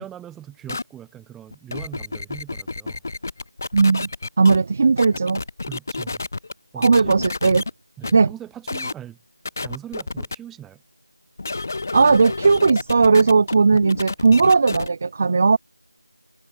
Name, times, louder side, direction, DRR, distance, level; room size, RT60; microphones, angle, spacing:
voice 1, 0.0-3.0 5.7-6.2 6.7-7.2 8.0-9.2 9.6-10.8, right 11 dB, 5° right, 6.7 m, -40 dB
sound 1, 0.7-0.8 1.5-4.6 5.0-6.5 6.8-7.7 8.0-8.1 8.7-8.9 9.4-10.3 11.4-14.9, left 3 dB, 35° left, 2.1 m, -30 dB
voice 2, 3.7-4.1 4.4-5.4 6.8-7.6 8.1-8.3 11.9-15.6, right 4 dB, 25° right, 1.0 m, -17 dB
figure-of-eight pair, 175°, 2 cm